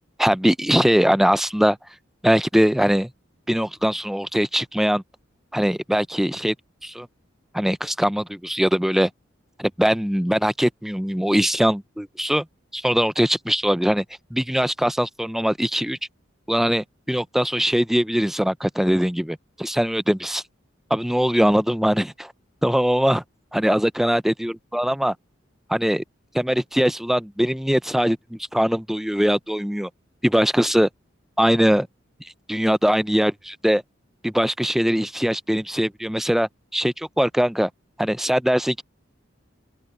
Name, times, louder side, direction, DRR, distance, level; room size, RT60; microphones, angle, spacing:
voice 1, 0.2-1.8 2.2-3.1 3.5-5.0 5.5-6.5 6.8-7.1 7.5-9.1 9.6-12.4 12.7-14.0 14.3-16.0 16.5-20.4 20.9-22.3 22.6-23.2 23.5-25.1 25.7-26.0 26.3-29.9 30.2-30.9 31.4-31.9 32.2-33.8 34.2-37.7 38.0-38.8, equal, ahead, 0.3 m, -21 dB
open air
head